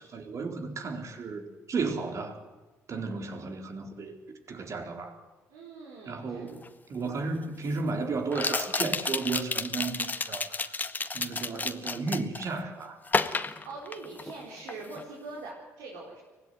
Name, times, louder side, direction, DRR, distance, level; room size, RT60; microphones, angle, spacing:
voice 1, 0.0-2.4 2.9-5.2 6.1-10.6 11.1-13.0, right 4 dB, 50° right, 5 dB, 4.0 m, -34 dB
voice 2, 5.5-6.5 13.4-16.2, right 3 dB, 75° right, -2 dB, 4.9 m, -43 dB
sound 1, 6.6-6.7 8.3-12.5 13.1-14.4 14.7-15.0, left 3 dB, 25° left, 1.8 m, -31 dB
24.5 x 17.5 x 9.5 m, 1.2 s
hypercardioid pair, 55°, 7 cm